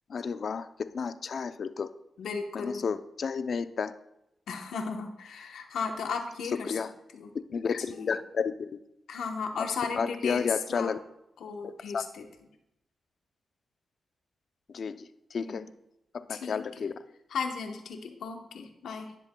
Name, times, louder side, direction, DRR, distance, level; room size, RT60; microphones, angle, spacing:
voice 1, 0.1-1.9 2.5-3.9 6.7-6.9 7.5-8.8 9.9-11.0 11.6-12.0 14.7-15.6 16.1-16.9, left 6 dB, 65° left, 12 dB, 0.5 m, -32 dB
voice 2, 2.2-2.9 4.5-6.8 7.1-7.3 7.9-8.1 9.1-10.9 11.4-12.2 15.4-15.6 16.3-16.9 17.3-19.1, left 5 dB, 85° left, 3 dB, 1.0 m, -35 dB
11.5 x 10.5 x 2.3 m, 0.83 s
cardioid pair, 60°, 0 cm